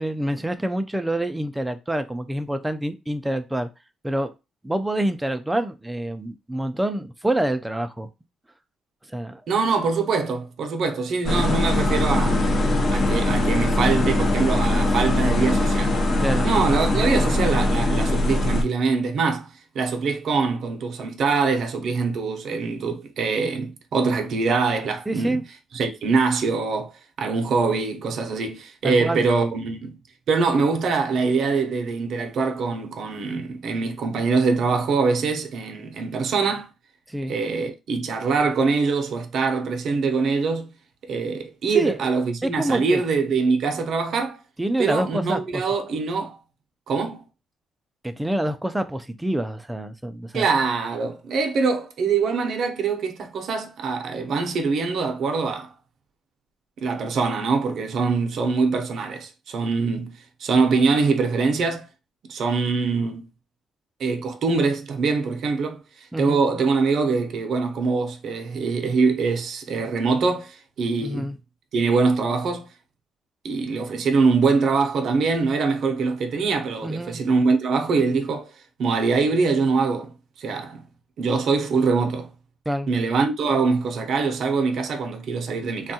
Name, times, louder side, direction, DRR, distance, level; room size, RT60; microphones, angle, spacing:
voice 1, 0.0-3.7 4.0-4.3 4.6-8.1 9.1-9.4 16.2-16.5 25.1-25.4 28.8-29.3 37.1-37.4 41.7-42.0 42.4-43.0 44.6-45.6 48.0-50.4 66.1-66.4 71.0-71.4 76.8-77.2 82.7-82.9, right 1 dB, 5° right, 0.3 m, -26 dB
voice 2, 9.5-15.9 16.4-25.4 25.7-30.0 30.3-36.7 37.3-40.7 41.1-44.4 44.8-46.4 46.9-47.2 50.3-55.7 56.8-61.9 62.3-63.2 64.0-71.3 71.7-72.7 73.4-78.5 78.8-80.9 81.2-82.3 82.9-85.9, right 4 dB, 60° right, 0.6 m, -23 dB
sound 1, 11.2-18.6, left 1 dB, 40° left, 0.6 m, -21 dB
3.5 x 2.3 x 2.7 m
cardioid pair, 135°, 0 cm